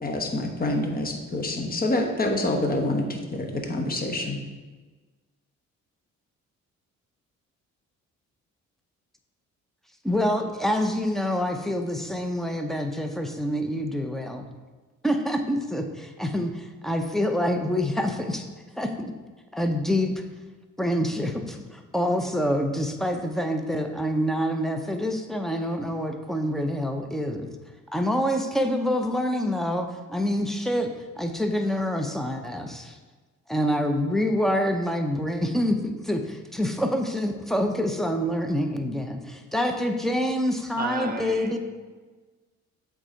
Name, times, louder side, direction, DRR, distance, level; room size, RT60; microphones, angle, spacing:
voice 1, 0.0-4.4, left 2 dB, 30° left, 3 dB, 1.1 m, -27 dB
voice 2, 10.0-14.4 15.0-18.5 18.8-19.1 19.5-20.1 20.8-27.5 27.9-32.9 33.5-41.6, equal, ahead, 5 dB, 0.7 m, -26 dB
voice 3, 40.8-41.6, right 3 dB, 30° right, 5 dB, 1.0 m, -32 dB
7.9 x 3.7 x 4.4 m, 1.3 s
cardioid pair, 90°, 30 cm